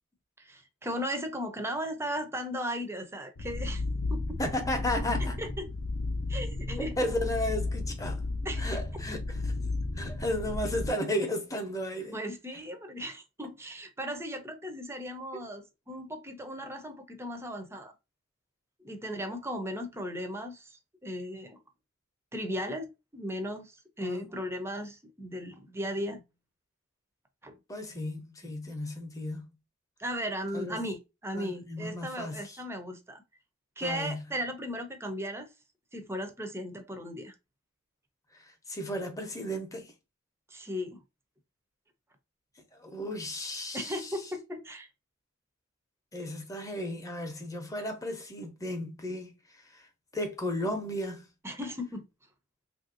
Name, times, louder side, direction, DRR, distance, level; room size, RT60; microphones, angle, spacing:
voice 1, 0.4-3.8 4.1-4.2 5.4-5.7 6.3-7.0 8.4-8.8 12.1-17.9 18.8-21.6 22.3-26.2 27.4-27.6 30.0-33.2 33.8-35.5 35.9-37.3 40.5-41.0 43.7-44.9 51.4-52.0, equal, 15° right, 0.6 m, -36 dB
sound 1, 3.4-10.9, left 2 dB, 75° left, 0.7 m, -33 dB
voice 2, 4.4-5.4 6.7-8.2 8.6-9.6 10.0-12.2 24.0-24.3 27.7-29.4 30.5-30.8 31.4-32.4 33.8-34.2 38.7-39.9 42.8-44.1 46.1-49.3 49.7-49.8 50.1-51.3, left 1 dB, 15° left, 0.8 m, -34 dB
3.2 x 2.6 x 2.5 m
head